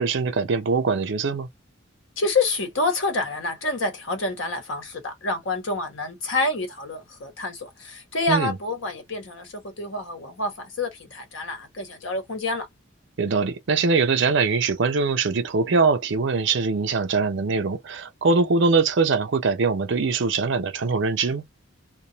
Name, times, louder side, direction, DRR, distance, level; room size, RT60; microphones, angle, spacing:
voice 1, 0.0-1.5 8.3-8.6 13.2-21.5, right 4 dB, 65° right, 0.5 m, -22 dB
voice 2, 2.2-10.5 10.8-12.7, left 2 dB, 75° left, 1.2 m, -27 dB
2.3 x 2.0 x 2.8 m
head